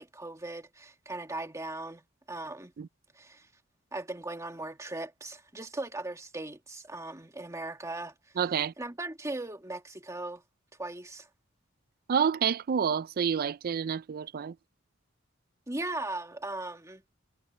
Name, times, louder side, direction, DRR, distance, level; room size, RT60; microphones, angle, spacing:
voice 1, 0.0-2.7 3.1-3.5 3.9-8.4 8.8-10.4 10.8-11.3 15.7-17.0, right 2 dB, 15° right, 2.0 m, -38 dB
voice 2, 8.4-8.7 12.1-14.6, right 7 dB, 45° right, 0.4 m, -28 dB
head